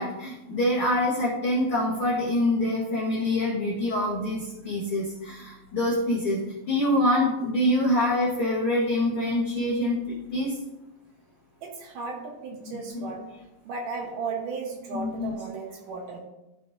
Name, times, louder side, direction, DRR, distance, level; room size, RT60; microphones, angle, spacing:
voice 1, 0.0-10.5 12.6-13.1 14.9-15.4, left 1 dB, 75° left, -5 dB, 1.2 m, -25 dB
voice 2, 11.6-13.3 13.7-16.2, right 4 dB, 70° right, 1 dB, 2.2 m, -35 dB
13.5 x 5.3 x 2.7 m, 0.98 s
omnidirectional pair, 4.4 m